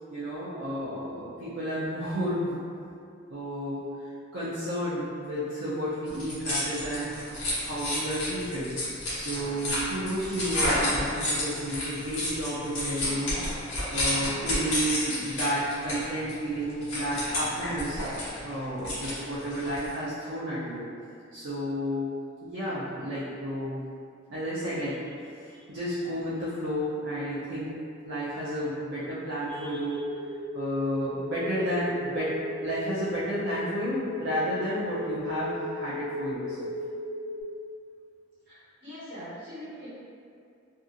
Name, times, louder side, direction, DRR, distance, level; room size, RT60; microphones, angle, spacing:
voice 1, 0.1-2.6 3.3-7.1 7.6-8.7 9.1-13.4 13.9-20.9 21.3-22.1 22.4-23.8 24.3-27.8 28.0-30.0 30.5-32.4 32.6-36.7, equal, 70° right, -10 dB, 0.5 m, -32 dB
sound 1, 6.1-19.9, left 1 dB, 75° left, 1.0 m, -31 dB
sound 2, 29.5-37.4, left 1 dB, 10° right, 0.8 m, -36 dB
voice 2, 38.5-39.9, equal, 50° right, -13 dB, 1.4 m, -42 dB
2.7 x 2.4 x 2.5 m, 2.4 s
head